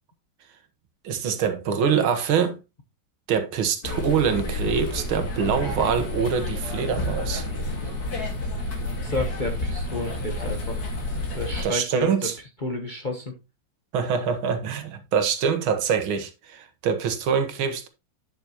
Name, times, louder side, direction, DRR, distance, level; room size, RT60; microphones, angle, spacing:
voice 1, 1.0-2.6 3.3-7.5 11.6-12.4 13.9-17.9, right 7 dB, 75° right, 2.0 m, -24 dB
sound 1, 3.8-11.6, left 1 dB, 50° left, 2.3 m, -30 dB
voice 2, 9.0-10.8 11.3-12.3 12.6-13.3, left 2 dB, 30° left, 0.9 m, -31 dB
9.5 x 6.9 x 2.9 m
omnidirectional pair, 2.3 m